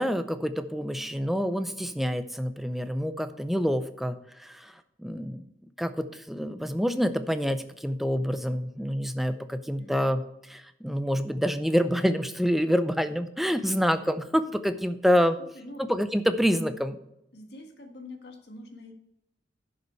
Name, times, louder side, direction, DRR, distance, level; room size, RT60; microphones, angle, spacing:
voice 1, 0.0-4.7 5.0-5.4 5.8-10.2 10.5-15.4 15.8-17.0, equal, ahead, 10 dB, 0.5 m, -27 dB
voice 2, 9.8-10.1 15.5-15.9 17.3-18.9, left 1 dB, 60° left, 4 dB, 1.7 m, -45 dB
11.0 x 6.8 x 4.4 m, 0.84 s
head